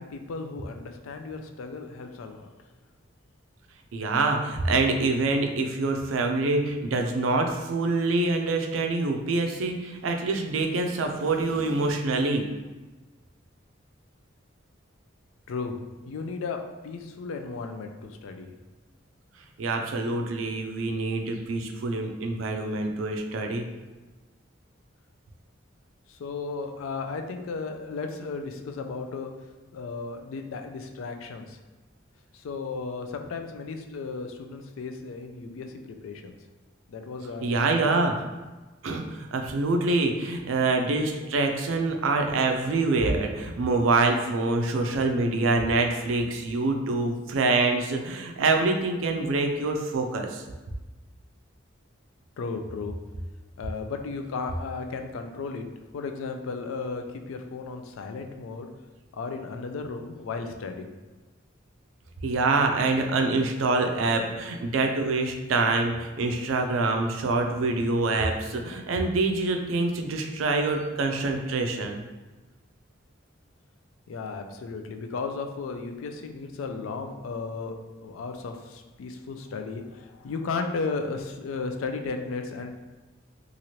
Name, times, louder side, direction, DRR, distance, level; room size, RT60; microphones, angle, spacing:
voice 1, 0.0-2.5 15.5-15.8 16.1-18.5 26.1-29.3 29.7-31.6 32.3-36.3 36.9-38.1 52.4-52.9 53.6-55.7 55.9-58.7 59.1-60.9 74.1-82.8, left 4 dB, 90° left, 5 dB, 0.4 m, -35 dB
voice 2, 3.9-12.5 19.6-23.6 37.4-38.2 38.8-50.4 62.2-72.0, right 3 dB, 85° right, 4 dB, 0.4 m, -25 dB
3.0 x 2.5 x 2.8 m, 1.2 s
head